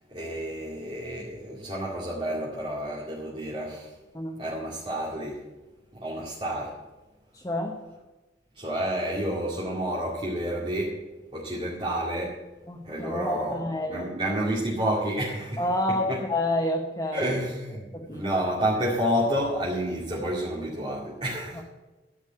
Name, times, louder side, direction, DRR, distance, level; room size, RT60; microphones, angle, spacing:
voice 1, 0.0-3.9 4.4-5.4 5.9-6.8 8.5-11.0 11.3-12.4 12.8-15.7 16.1-16.2 17.1-21.6, equal, 30° right, -6 dB, 2.3 m, -30 dB
voice 2, 7.3-7.8 12.7-14.1 15.6-17.3 17.9-18.3 21.6-21.7, left 1 dB, 20° left, 1 dB, 1.0 m, -29 dB
14.5 x 5.2 x 9.5 m, 1.1 s
head